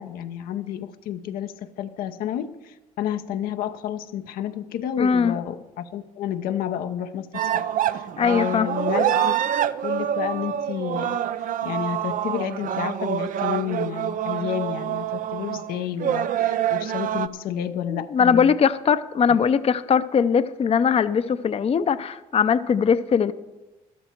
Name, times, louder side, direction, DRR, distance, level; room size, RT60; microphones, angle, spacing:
voice 1, 0.0-9.4 9.8-11.2 11.6-18.6 19.3-19.4, left 10 dB, 85° left, 8 dB, 0.7 m, -30 dB
voice 2, 5.0-5.4 8.2-8.7 18.1-23.3, left 6 dB, 40° left, 13 dB, 0.6 m, -20 dB
sound 1, 7.3-17.3, right 10 dB, 65° right, 0.5 m, -26 dB
12.5 x 12.5 x 4.5 m, 1.1 s
supercardioid pair, 65°, 15 cm